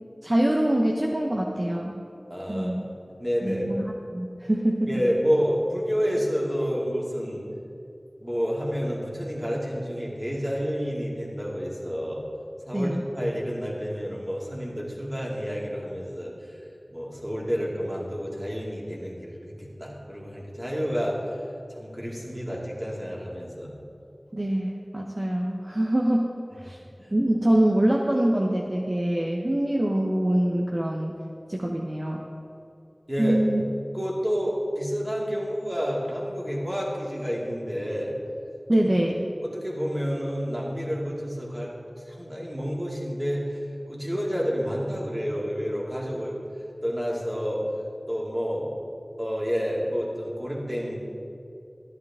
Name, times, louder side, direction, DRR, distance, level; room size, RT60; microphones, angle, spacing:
voice 1, 0.2-1.9 2.5-2.8 3.4-5.0 12.7-13.0 24.3-26.3 26.7-26.8 27.1-31.1 31.5-32.2 33.2-33.6 38.7-39.2, right 1 dB, 40° right, -1 dB, 0.8 m, -24 dB
voice 2, 2.3-2.8 3.2-3.7 4.9-7.5 8.2-12.2 12.6-16.3 16.9-21.4 21.7-23.7 27.0-27.1 33.1-33.4 33.9-38.1 38.8-38.9 39.4-41.7 42.1-43.6 43.9-46.4 46.8-47.6 48.1-48.7 49.2-51.0, equal, 15° right, -4 dB, 2.4 m, -29 dB
13.0 x 10.5 x 3.6 m, 2.6 s
wide cardioid pair, 50°, 0 cm